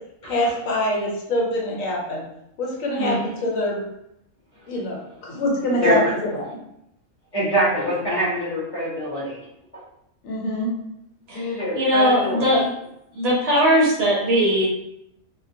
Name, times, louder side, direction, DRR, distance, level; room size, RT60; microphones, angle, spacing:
voice 1, 0.2-2.2 2.6-3.1 3.4-3.8 4.7-6.0 6.3-6.5 10.2-10.7, left 1 dB, 80° left, -2 dB, 1.1 m, -24 dB
voice 2, 5.7-6.2 7.3-9.4 11.3-12.6, equal, 35° left, -7 dB, 0.7 m, -24 dB
voice 3, 11.7-12.7 13.1-14.6, equal, 60° right, -4 dB, 0.7 m, -19 dB
2.3 x 2.2 x 2.5 m, 0.80 s
omnidirectional pair, 1.4 m